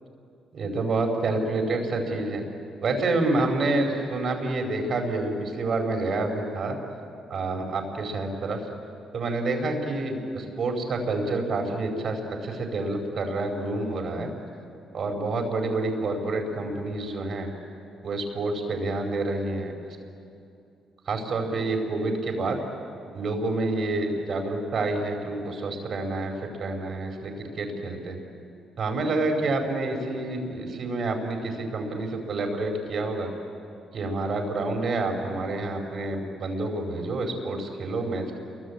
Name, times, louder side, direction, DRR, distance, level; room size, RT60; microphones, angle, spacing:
voice 1, 0.5-2.4 2.8-6.7 7.3-8.6 9.1-14.3 14.9-17.5 18.0-19.7 21.1-22.6 23.1-28.2 28.8-33.3 33.9-38.4, right 2 dB, 55° right, 3 dB, 4.9 m, -28 dB
28.5 x 23.5 x 8.7 m, 2.6 s
cardioid pair, 90°, 0 cm